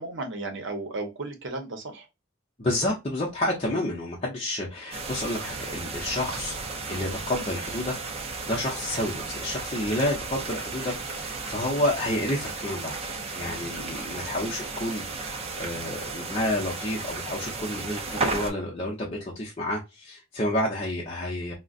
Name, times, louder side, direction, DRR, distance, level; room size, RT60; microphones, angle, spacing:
voice 1, 0.0-2.1 13.8-14.0, right 2 dB, 60° right, 0.8 m, -35 dB
voice 2, 2.6-6.6 6.9-13.0 13.3-21.5, left 1 dB, 30° left, 0.7 m, -30 dB
sound 1, 4.9-18.5, right 3 dB, 30° right, 0.5 m, -34 dB
3.8 x 2.2 x 2.4 m
head